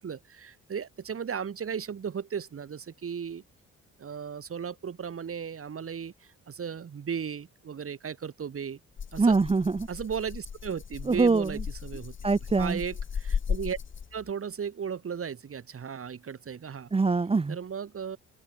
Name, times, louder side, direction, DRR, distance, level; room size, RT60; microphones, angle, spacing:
voice 1, 0.0-3.4 4.0-8.8 9.1-9.4 9.9-12.2 12.6-13.8 14.1-16.9 17.5-18.2, right 7 dB, 45° right, 5.2 m, -36 dB
Rattle (instrument), 9.0-14.3, left 7 dB, 40° left, 1.9 m, -36 dB
voice 2, 9.2-9.9 11.1-11.5 12.2-12.8 16.9-17.6, right 4 dB, 20° right, 0.9 m, -23 dB
open air
cardioid pair, 90°, 30 cm